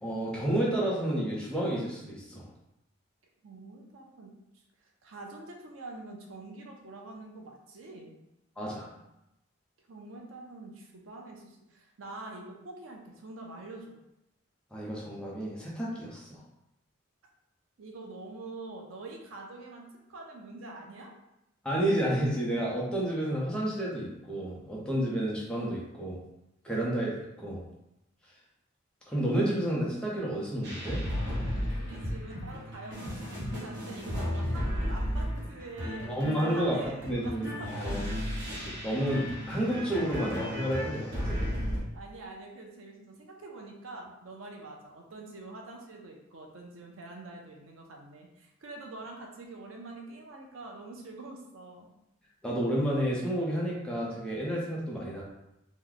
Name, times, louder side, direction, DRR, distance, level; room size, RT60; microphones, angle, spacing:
voice 1, 0.0-2.5 8.6-8.9 14.7-16.4 21.6-26.2 26.6-27.7 29.1-31.0 36.1-36.8 37.1-38.1 38.8-41.5 52.4-55.2, right 1 dB, 5° left, -5 dB, 0.8 m, -30 dB
voice 2, 3.4-4.3 5.0-8.2 9.9-14.0 17.8-21.1 31.7-36.2 36.5-37.9 41.9-51.9, right 2 dB, 85° right, 1 dB, 0.6 m, -45 dB
sound 1, 30.6-41.8, equal, 60° right, 1.0 m, -34 dB
3.0 x 2.2 x 3.8 m, 0.87 s
head